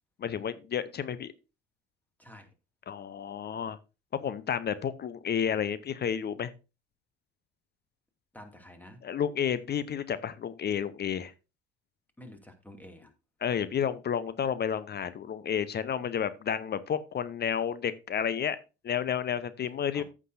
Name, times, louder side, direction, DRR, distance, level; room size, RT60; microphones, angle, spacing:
voice 1, 0.2-1.3 2.9-3.8 4.1-6.5 9.0-11.3 13.4-18.6 18.8-20.0, left 8 dB, 30° left, 15 dB, 0.8 m, -31 dB
voice 2, 8.3-9.0 12.2-13.1 19.9-20.0, left 1 dB, 5° left, 6 dB, 2.3 m, -49 dB
14.5 x 6.1 x 2.6 m, 0.30 s
figure-of-eight pair, 55°, 32 cm